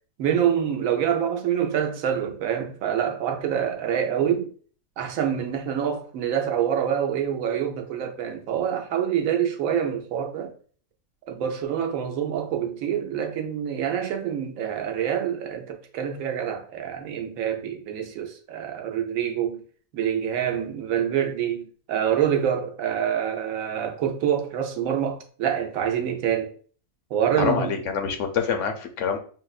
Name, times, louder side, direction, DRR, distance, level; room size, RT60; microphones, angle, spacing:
voice 1, 0.2-4.5 5.0-10.5 11.3-19.6 19.9-26.5 27.1-27.8, right 9 dB, 80° right, 1.0 m, -26 dB
voice 2, 27.4-29.2, left 6 dB, 70° left, 0.9 m, -26 dB
5.7 x 2.1 x 2.3 m
omnidirectional pair, 1.4 m